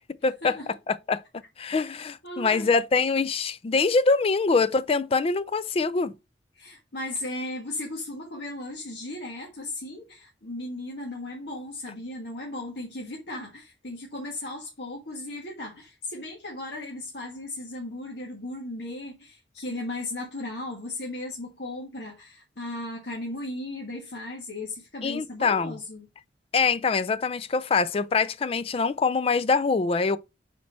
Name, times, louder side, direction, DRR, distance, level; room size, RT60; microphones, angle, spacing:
voice 1, 0.2-0.6 0.9-1.2 1.6-6.1 25.0-25.8 26.5-30.2, left 4 dB, 35° left, 0.3 m, -24 dB
voice 2, 2.2-2.7 6.5-26.1, left 2 dB, 70° left, 1.6 m, -36 dB
5.8 x 4.3 x 4.2 m
head